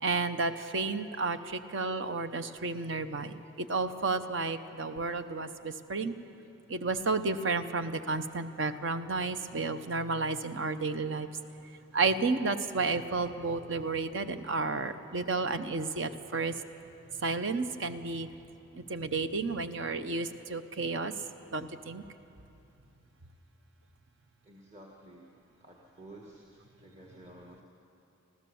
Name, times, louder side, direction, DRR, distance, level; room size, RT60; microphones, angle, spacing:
voice 1, 0.0-1.4 1.7-3.3 3.7-6.1 6.7-11.3 11.9-16.5 17.2-18.3 18.9-21.1 21.5-22.0, right 3 dB, 65° right, 10 dB, 0.8 m, -31 dB
voice 2, 24.4-25.3 25.6-27.6, right 1 dB, 35° right, -2 dB, 1.6 m, -52 dB
26.0 x 15.0 x 7.1 m, 2.8 s
head